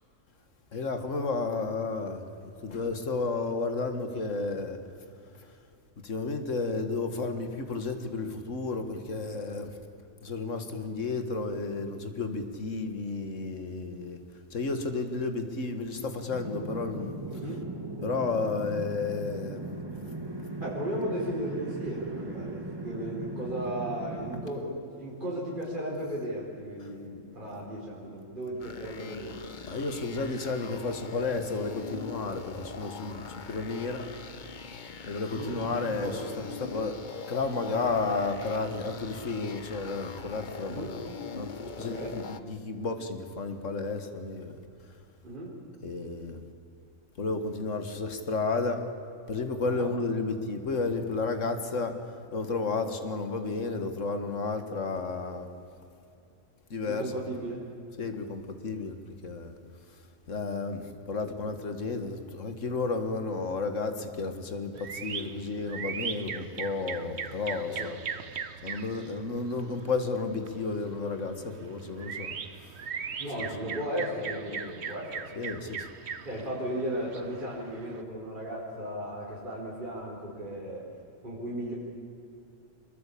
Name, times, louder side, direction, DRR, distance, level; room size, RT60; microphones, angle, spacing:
voice 1, 0.7-2.3 2.6-4.8 5.3-5.6 6.0-9.8 10.2-14.2 14.5-17.4 18.0-19.6 26.8-26.9 27.5-27.7 29.7-34.1 35.1-37.0 37.3-41.0 41.4-44.6 44.9-45.0 45.8-46.4 47.2-48.9 49.3-55.5 56.7-57.2 58.0-59.0 59.2-59.6 59.9-68.0 68.6-72.8 73.4-73.5 75.4-75.9, left 3 dB, 70° left, 7 dB, 2.2 m, -32 dB
sound 1, 16.3-24.5, right 2 dB, 20° right, 1.6 m, -38 dB
voice 2, 17.3-17.6 20.6-29.4 35.3-35.6 35.8-36.2 40.6-40.9 41.7-42.2 45.2-45.6 49.7-49.9 56.8-57.6 67.7-67.9 73.2-75.3 76.2-80.9 81.2-81.7, right 1 dB, 40° right, -5 dB, 4.8 m, -35 dB
sound 2, 28.6-42.4, left 5 dB, 40° left, 1.1 m, -42 dB
sound 3, 64.7-78.0, right 6 dB, 55° right, 1.3 m, -40 dB
24.5 x 21.5 x 8.6 m, 2.6 s
omnidirectional pair, 1.4 m